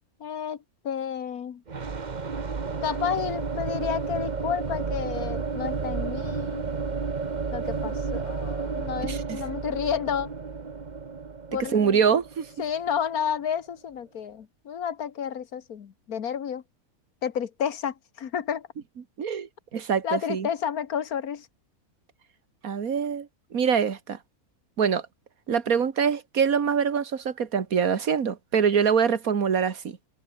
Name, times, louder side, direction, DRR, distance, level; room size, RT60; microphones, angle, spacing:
voice 1, 0.2-0.6 0.8-1.6 2.8-6.7 7.5-10.3 11.5-12.0 12.6-16.6 17.2-18.7 20.0-21.5, left 8 dB, 80° left, 1.7 m, -31 dB
sound 1, 1.7-13.5, right 5 dB, 30° right, 1.2 m, -32 dB
voice 2, 9.0-9.4 11.7-12.5 19.2-20.5 22.6-24.2 24.8-25.1 25.5-30.0, right 7 dB, 70° right, 2.0 m, -24 dB
omnidirectional pair, 1.6 m